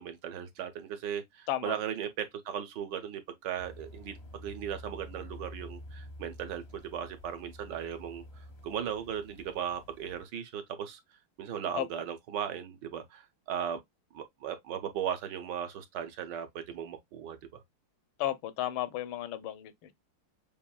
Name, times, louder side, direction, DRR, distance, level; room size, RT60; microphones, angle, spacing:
voice 1, 0.0-11.0 11.4-13.8 14.1-17.6, right 9 dB, 65° right, 1.2 m, -37 dB
sound 1, 3.6-10.2, left 1 dB, 50° left, 0.8 m, -49 dB
voice 2, 18.2-19.9, left 13 dB, 75° left, 1.4 m, -33 dB
6.9 x 2.6 x 2.2 m
omnidirectional pair, 2.4 m